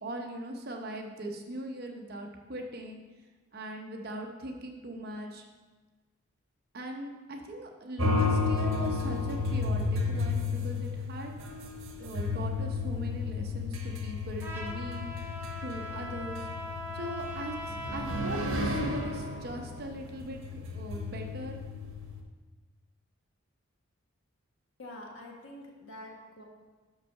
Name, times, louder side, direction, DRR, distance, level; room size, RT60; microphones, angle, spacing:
voice 1, 0.0-3.0 3.5-5.4 6.7-11.3 12.0-15.0 15.6-16.4 16.9-21.6, right 1 dB, 50° right, 2 dB, 0.8 m, -40 dB
sound 1, 8.0-22.2, left 3 dB, 80° right, 1.0 m, -33 dB
Trumpet, 14.4-18.6, equal, 10° right, 0.7 m, -40 dB
voice 2, 24.8-26.4, left 1 dB, 65° left, -1 dB, 1.4 m, -46 dB
5.4 x 5.0 x 6.4 m, 1.3 s
head